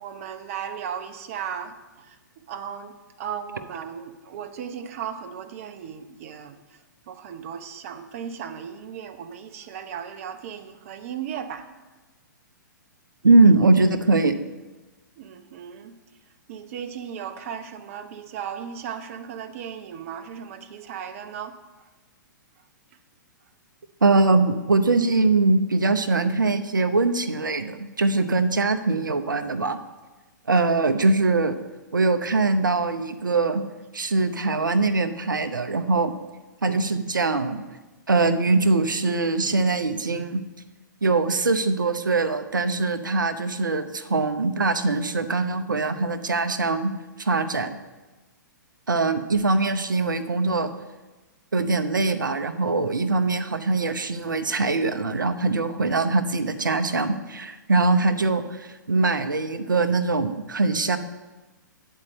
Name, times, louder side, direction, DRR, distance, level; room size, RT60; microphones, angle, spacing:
voice 1, 0.0-2.1 2.5-6.6 7.1-11.6 15.2-16.0 16.5-21.6 34.6-34.7, right 8 dB, 45° right, 9 dB, 0.8 m, -36 dB
voice 2, 13.2-14.3 24.0-29.8 30.5-31.6 31.9-33.6 33.9-36.1 36.6-37.7 38.1-40.4 41.0-46.9 47.2-47.8 48.9-50.7 51.5-61.0, right 3 dB, 75° right, 10 dB, 0.7 m, -22 dB
9.7 x 4.5 x 7.6 m, 1.2 s
figure-of-eight pair, 115°, 11 cm